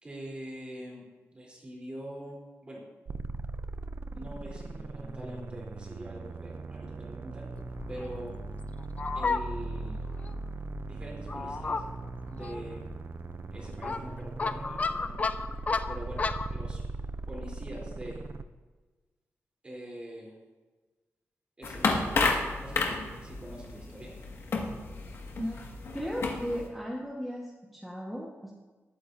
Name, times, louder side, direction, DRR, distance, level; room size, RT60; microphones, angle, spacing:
voice 1, 0.0-1.0 1.3-2.8 4.1-7.5 7.9-8.4 9.1-10.0 10.8-11.8 12.3-12.8 13.5-15.3 15.9-16.8 17.3-18.2 19.6-20.3 21.6-22.0 22.6-24.1, right 1 dB, 25° right, -4 dB, 3.4 m, -43 dB
sound 1, 3.1-18.4, right 3 dB, 50° right, 0.5 m, -39 dB
Fowl, 7.5-16.6, left 4 dB, 30° left, 0.4 m, -35 dB
sound 2, 21.6-26.7, left 3 dB, 65° left, 1.7 m, -31 dB
voice 2, 25.9-28.5, equal, ahead, -4 dB, 1.2 m, -36 dB
19.5 x 9.5 x 2.6 m, 1.3 s
wide cardioid pair, 170°, 5 cm